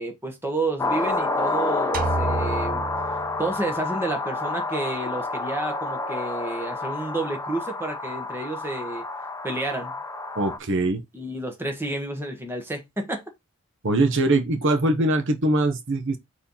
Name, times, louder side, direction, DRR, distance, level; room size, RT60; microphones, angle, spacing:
voice 1, 0.0-2.8 3.4-9.0 9.4-9.9 11.1-13.2, right 2 dB, 10° right, 1.5 m, -30 dB
sound 1, 0.8-10.6, left 3 dB, 15° left, 0.7 m, -29 dB
sound 2, 1.9-3.8, right 3 dB, 40° right, 0.4 m, -30 dB
voice 2, 10.4-11.0 13.8-16.2, right 2 dB, 55° right, 0.9 m, -22 dB
4.6 x 4.4 x 5.5 m
head